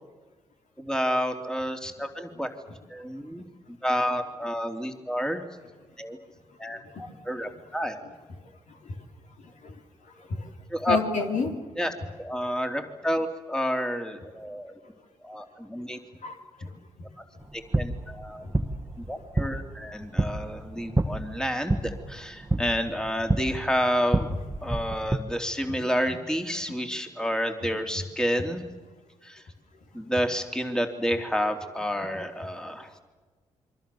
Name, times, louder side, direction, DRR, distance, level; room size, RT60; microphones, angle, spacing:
voice 1, 0.8-2.5 2.9-3.4 3.8-5.4 6.0-6.2 6.6-8.0 10.7-11.0 11.8-14.8 15.2-16.0 17.5-18.4 19.0-24.3 24.6-28.6 29.2-29.4 29.9-32.9, equal, 5° left, 5 dB, 3.3 m, -29 dB
voice 2, 10.2-10.5 10.9-11.5 16.2-16.7 18.4-18.5 21.0-21.1 25.7-25.8, left 3 dB, 60° left, 3 dB, 3.8 m, -30 dB
sound 1, 17.4-25.2, right 2 dB, 20° right, 1.7 m, -29 dB
28.5 x 23.5 x 7.1 m, 1.4 s
hypercardioid pair, 45°, 14 cm